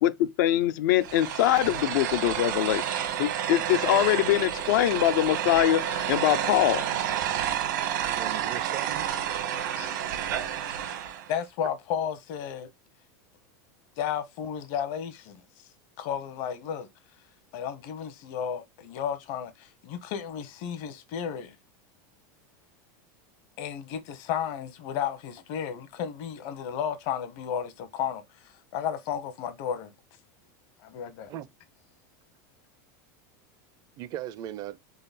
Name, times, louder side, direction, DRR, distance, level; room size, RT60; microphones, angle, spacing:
voice 1, 0.0-2.8 3.2-6.9, left 13 dB, 70° left, 0.5 m, -23 dB
sound 1, 1.0-11.3, right 10 dB, 80° right, 1.0 m, -30 dB
voice 2, 8.0-9.1 9.8-9.9 31.3-31.5 34.0-34.8, right 12 dB, 40° right, 0.4 m, -38 dB
voice 3, 11.3-12.7 14.0-15.4 16.0-16.9 17.5-21.5 23.6-29.9 30.8-31.3, left 8 dB, 55° left, 1.0 m, -33 dB
3.9 x 3.3 x 4.1 m
supercardioid pair, 135°, 10 cm